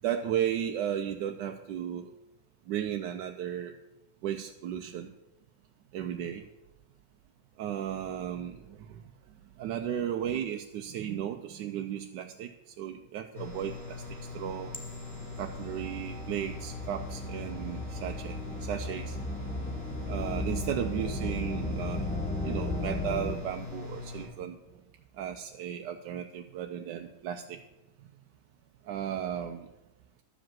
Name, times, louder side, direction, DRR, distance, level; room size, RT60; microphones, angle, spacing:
voice 1, 0.0-2.1 2.7-3.7 4.2-5.1 5.9-6.4 7.6-9.0 9.6-14.0 14.3-14.7 15.4-19.2 20.1-22.1 22.4-24.6 25.2-27.6 28.9-29.7, right 10 dB, 85° right, 5 dB, 1.2 m, -35 dB
sound 1, 13.3-24.3, left 4 dB, 45° left, 3.8 m, -42 dB
sound 2, 14.7-23.4, left 1 dB, 10° left, 0.4 m, -36 dB
12.5 x 5.1 x 7.4 m, 1.0 s
omnidirectional pair, 1.8 m